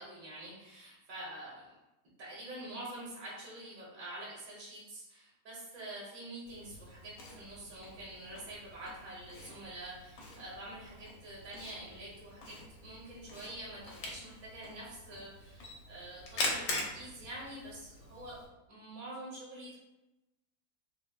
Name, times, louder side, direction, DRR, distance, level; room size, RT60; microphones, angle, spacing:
voice 1, 0.0-1.8 2.2-19.8, right 1 dB, 45° right, -5 dB, 0.7 m, -46 dB
Camera, 6.5-18.5, left 2 dB, 75° left, 1.0 m, -43 dB
3.4 x 2.0 x 2.2 m, 0.99 s
omnidirectional pair, 1.7 m